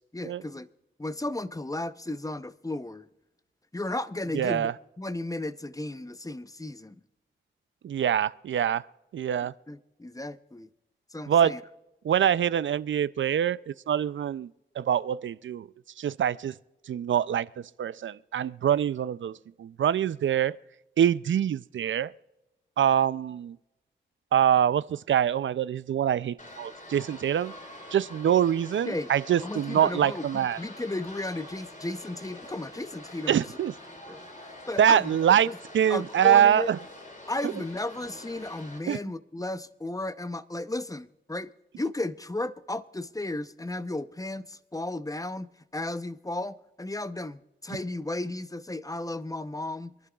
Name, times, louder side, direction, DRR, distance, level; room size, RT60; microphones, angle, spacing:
voice 1, 0.1-0.7 1.0-3.1 3.7-7.0 9.7-10.7 11.1-11.6 28.9-29.1 29.4-33.4 34.1-35.1 35.5-35.6 35.9-36.7 37.3-41.5 41.8-49.9, left 2 dB, 15° left, 0.7 m, -34 dB
voice 2, 4.3-4.7 7.8-8.8 9.1-9.5 11.3-11.5 12.0-14.5 14.8-15.7 16.0-16.5 16.9-17.5 17.8-19.3 19.6-20.5 21.0-22.1 22.8-23.6 24.3-27.5 27.9-30.6 33.3-33.7 34.8-35.5 35.7-36.8 38.9-39.0, right 9 dB, 70° right, 0.4 m, -24 dB
sound 1, 26.4-38.8, left 1 dB, 40° left, 4.2 m, -46 dB
26.5 x 11.0 x 2.3 m
cardioid pair, 40°, 21 cm